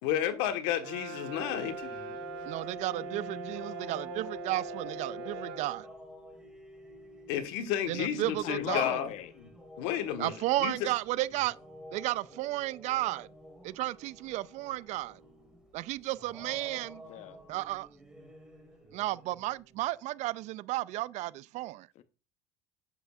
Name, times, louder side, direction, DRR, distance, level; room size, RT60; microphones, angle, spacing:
voice 1, 0.0-2.0 7.3-9.1 9.4-9.5 9.8-10.3 10.6-10.7, left 10 dB, 80° left, 1.3 m, -31 dB
Brass instrument, 0.8-5.7, right 3 dB, 80° right, 1.0 m, -41 dB
sound 1, 1.3-19.9, equal, 5° right, 2.1 m, -50 dB
voice 2, 2.5-5.9 7.9-8.9 10.2-11.6 11.9-13.3 13.6-15.2 15.7-17.0 17.5-17.9 18.9-21.9, right 17 dB, 60° right, 0.4 m, -33 dB
voice 3, 8.4-9.3 17.0-17.4 22.0-22.1, left 12 dB, 55° left, 0.8 m, -37 dB
8.1 x 7.0 x 2.3 m
supercardioid pair, 100°, 14 cm